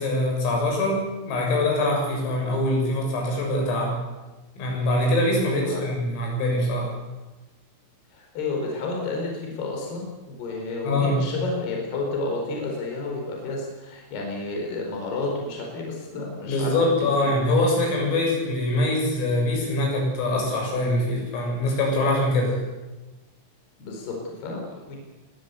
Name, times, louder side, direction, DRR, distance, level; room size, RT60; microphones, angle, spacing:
voice 1, 0.0-4.0 4.6-6.9 10.8-11.2 16.5-22.6, left 1 dB, 80° left, 0 dB, 10.0 m, -23 dB
voice 2, 5.5-6.2 8.1-16.7 23.8-25.0, left 3 dB, 55° left, 0 dB, 6.4 m, -31 dB
23.5 x 21.0 x 8.4 m, 1.1 s
omnidirectional pair, 5.9 m